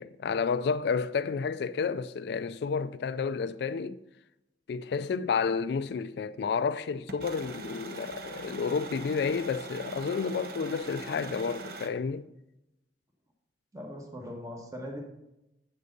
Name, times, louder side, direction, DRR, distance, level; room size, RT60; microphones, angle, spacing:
voice 1, 0.0-4.0 4.7-12.3, left 5 dB, 65° left, 0.3 m, -31 dB
sound 1, 7.1-11.9, right 3 dB, 60° right, 0.9 m, -42 dB
voice 2, 13.7-15.0, equal, 20° right, 1.2 m, -40 dB
7.8 x 6.6 x 5.3 m
head